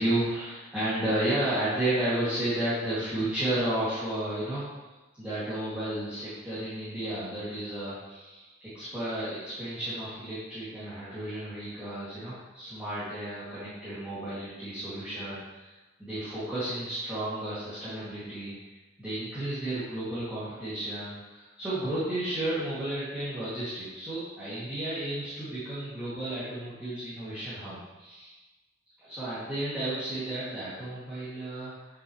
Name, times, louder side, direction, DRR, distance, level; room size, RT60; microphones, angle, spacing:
voice 1, 0.0-4.6 5.2-15.7 16.0-18.5 19.0-28.3 29.0-32.0, right 1 dB, 5° right, -14 dB, 2.5 m, -32 dB
9.7 x 6.6 x 3.2 m, 1.1 s
head